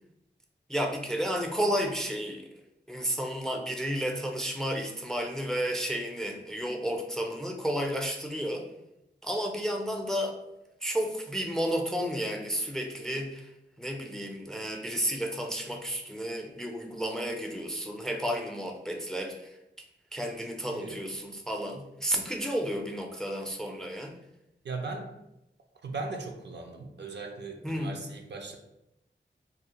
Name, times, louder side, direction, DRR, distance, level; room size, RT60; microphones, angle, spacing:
voice 1, 0.7-2.5 2.9-8.6 9.2-10.4 10.8-13.5 13.8-19.6 20.1-24.1 27.6-28.0, equal, 5° left, 3 dB, 0.3 m, -32 dB
voice 2, 24.6-25.1 25.8-28.6, right 3 dB, 65° right, 3 dB, 0.4 m, -38 dB
2.5 x 2.0 x 2.8 m, 0.89 s
cardioid pair, 50°, 19 cm